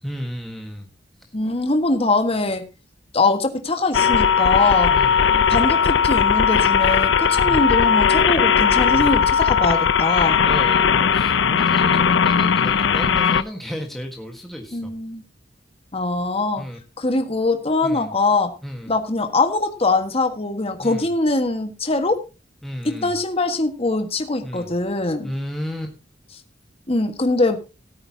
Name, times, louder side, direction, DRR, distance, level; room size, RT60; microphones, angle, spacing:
voice 1, 0.0-0.9 1.2-1.3 4.9-5.5 7.4-7.7 8.9-9.2 10.4-14.9 16.6-16.8 17.8-18.1 18.6-19.0 20.8-21.1 22.6-23.2 24.4-24.7 25.2-25.9, equal, ahead, 2 dB, 1.5 m, -33 dB
voice 2, 1.3-2.6 3.1-4.9 5.5-10.4 14.7-15.2 15.9-16.6 17.0-18.5 18.9-22.2 22.8-25.3 26.9-27.6, left 2 dB, 35° left, 6 dB, 1.6 m, -22 dB
sound 1, 3.9-13.4, left 7 dB, 80° left, 0.7 m, -18 dB
17.5 x 9.0 x 2.8 m, 0.29 s
head